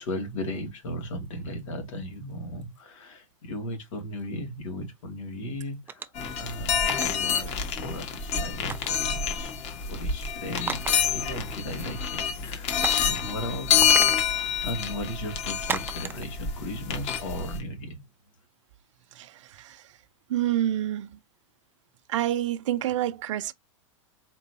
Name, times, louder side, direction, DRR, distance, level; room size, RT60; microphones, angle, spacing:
voice 1, 0.0-6.1 6.4-9.5 9.9-10.9 11.1-12.7 13.0-14.4 14.6-18.0, equal, 80° left, 2.5 m, -36 dB
sound 1, 5.9-6.2 6.8-7.1 8.7-9.0 10.5-11.2 11.5-11.6 12.8-13.1 13.8-14.3 15.7-16.2, right 6 dB, 15° right, 0.4 m, -33 dB
sound 2, 6.2-17.6, left 7 dB, 40° left, 1.7 m, -27 dB
voice 2, 19.1-19.8 20.3-21.2 22.1-23.5, right 12 dB, 75° right, 0.6 m, -28 dB
4.5 x 3.8 x 2.8 m
hypercardioid pair, 125°, 16 cm